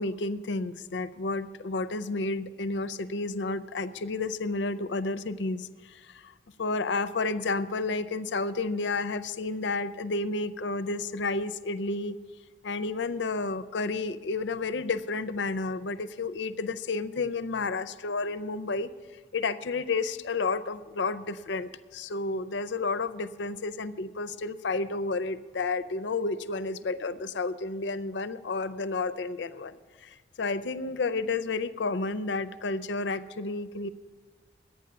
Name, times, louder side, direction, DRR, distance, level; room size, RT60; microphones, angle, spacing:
voice 1, 0.0-12.2 12.6-18.9 19.3-33.9, left 3 dB, 75° left, 14 dB, 0.5 m, -31 dB
11.5 x 9.0 x 6.8 m, 1.5 s
head